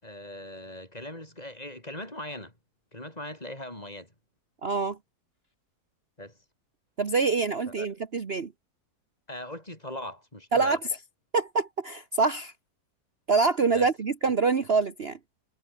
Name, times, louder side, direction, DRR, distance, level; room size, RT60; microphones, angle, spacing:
voice 1, 0.0-2.5 2.9-4.1 6.2-6.4 7.8-7.9 9.3-10.8 13.7-13.9 14.3-14.4, left 1 dB, 25° left, 5.2 m, -40 dB
voice 2, 4.6-5.0 7.0-8.5 10.5-10.8 11.3-12.5 13.3-15.2, right 4 dB, 40° right, 1.4 m, -25 dB
omnidirectional pair, 1.7 m